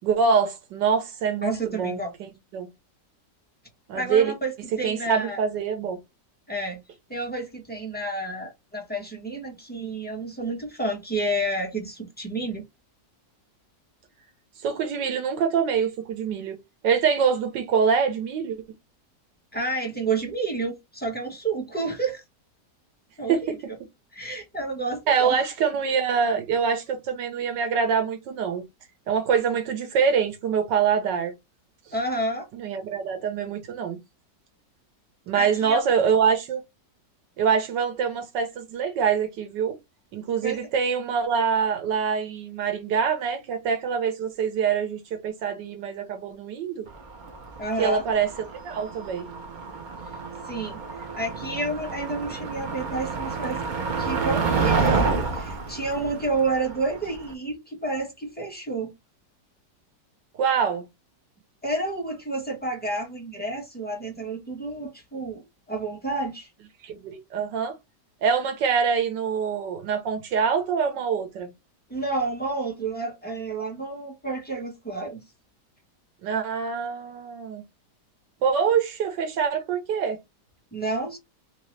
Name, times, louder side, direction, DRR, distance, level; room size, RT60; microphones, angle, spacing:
voice 1, 0.0-2.7 3.9-4.3 4.8-6.0 14.6-16.6 16.8-18.6 23.3-23.4 25.1-28.6 29.1-31.3 32.5-34.0 35.3-36.6 37.4-39.7 40.1-46.9 47.8-49.3 60.4-60.8 66.8-67.7 68.2-71.5 76.2-77.6 78.4-80.2, right 6 dB, 85° right, 1.6 m, -25 dB
voice 2, 1.4-2.1 3.9-5.4 6.5-6.8 7.1-12.6 19.5-22.2 23.2-23.6 24.1-25.4 31.9-32.5 35.3-35.8 40.4-40.6 47.6-48.0 50.4-53.6 54.0-58.9 61.6-65.4 65.7-66.5 71.9-75.2 80.7-81.2, right 2 dB, 5° left, 1.3 m, -30 dB
Motor vehicle (road), 46.9-57.3, right 4 dB, 65° right, 0.4 m, -29 dB
3.5 x 2.9 x 3.2 m
omnidirectional pair, 1.9 m